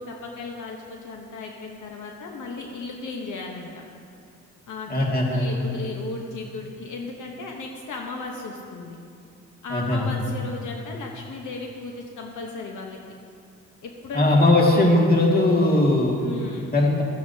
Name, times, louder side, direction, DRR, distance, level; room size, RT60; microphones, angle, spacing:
voice 1, 0.0-3.7 4.7-9.0 9.6-13.0 13.8-14.3 16.2-16.7, left 3 dB, 65° left, 0 dB, 1.1 m, -35 dB
voice 2, 4.9-5.6 9.7-10.1 14.1-16.3 16.6-17.0, left 1 dB, 30° left, -2 dB, 2.0 m, -19 dB
14.0 x 9.2 x 2.8 m, 2.4 s
cardioid pair, 95°, 33 cm